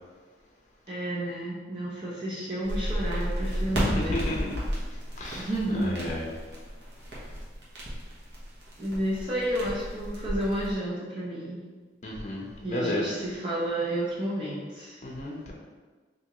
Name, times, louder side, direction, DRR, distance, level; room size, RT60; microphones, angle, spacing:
voice 1, 0.9-4.2 5.4-6.0 8.8-11.6 12.6-15.0, right 1 dB, 30° right, -8 dB, 0.6 m, -31 dB
sound 1, 2.6-10.7, equal, 70° right, 1.0 m, -34 dB
voice 2, 3.8-4.5 5.1-6.2 12.0-13.1 15.0-15.5, left 1 dB, 40° left, -2 dB, 0.6 m, -32 dB
3.5 x 2.7 x 2.9 m, 1.4 s
head